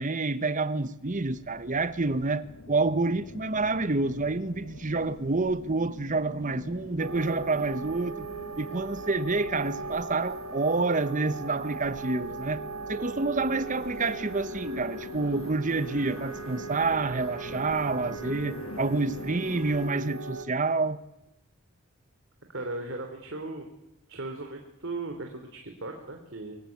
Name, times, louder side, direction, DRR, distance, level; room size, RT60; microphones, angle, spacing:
voice 1, 0.0-8.3 8.6-12.6 12.9-21.0, right 3 dB, 35° right, 1.0 m, -28 dB
sound 1, 1.0-19.9, left 2 dB, 70° left, 1.3 m, -45 dB
sound 2, 7.0-20.4, right 3 dB, 80° right, 1.6 m, -39 dB
voice 2, 22.5-23.6 24.1-26.6, right 2 dB, 60° right, 3.0 m, -37 dB
23.5 x 16.0 x 9.4 m
head